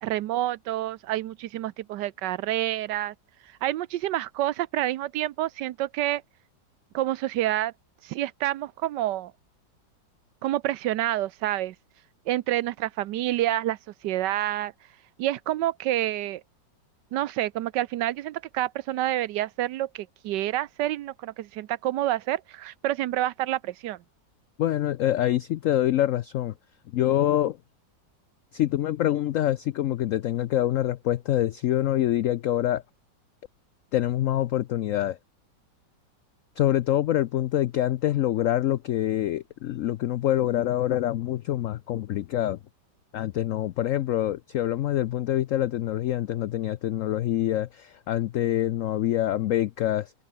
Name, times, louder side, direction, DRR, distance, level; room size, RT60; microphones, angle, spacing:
voice 1, 0.0-3.1 3.6-6.2 6.9-7.7 8.0-9.3 10.4-11.7 12.3-13.8 14.0-14.7 15.2-16.4 17.1-24.0, right 14 dB, 75° right, 1.3 m, -28 dB
voice 2, 24.6-26.5 26.9-27.6 28.5-32.8 33.9-35.2 36.6-42.6 43.1-50.1, left 12 dB, 85° left, 0.7 m, -25 dB
open air
omnidirectional pair, 2.0 m